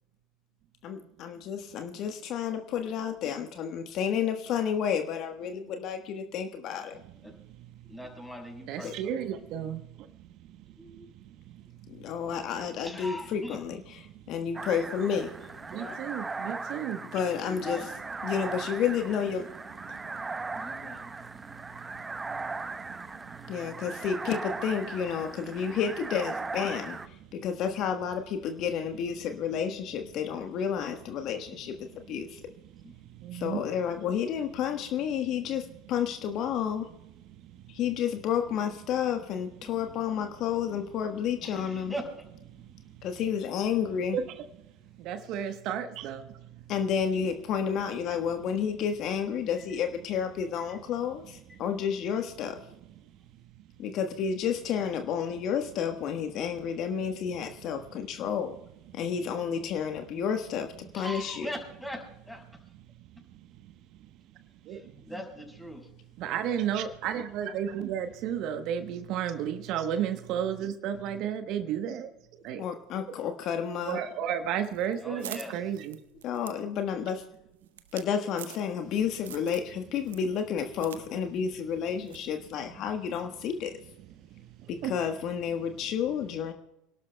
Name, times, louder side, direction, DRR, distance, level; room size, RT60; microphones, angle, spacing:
voice 1, 0.8-7.0 8.8-8.9 11.9-14.0 14.3-15.5 17.1-17.8 18.2-19.5 23.5-32.4 33.3-36.9 37.7-41.9 43.0-44.2 46.7-52.6 53.8-58.6 58.9-61.5 72.6-74.0 76.2-77.3 77.9-83.8 84.7-86.5, left 7 dB, 50° left, 6 dB, 1.2 m, -31 dB
voice 2, 7.9-9.3 10.8-11.1 12.8-13.6 15.7-16.0 17.2-17.9 20.5-21.1 32.8-32.9 35.3-35.5 41.4-42.0 50.7-50.8 60.9-62.4 64.7-65.9 75.0-75.7, equal, 5° left, 2 dB, 5.4 m, -41 dB
voice 3, 8.7-9.8 15.7-17.0 33.2-33.6 44.1-44.2 45.0-46.3 64.7-64.8 66.2-72.1 72.4-72.6 73.9-76.0 84.8-84.9, right 9 dB, 55° right, 9 dB, 1.0 m, -32 dB
sound 1, 14.5-27.1, right 3 dB, 20° right, 0.7 m, -38 dB
sound 2, 74.6-78.9 79.2-79.7 80.0-81.0 81.3-81.4 82.1-82.3, right 11 dB, 80° right, 0.7 m, -45 dB
29.5 x 12.5 x 2.2 m, 0.86 s
hypercardioid pair, 75°, 0 cm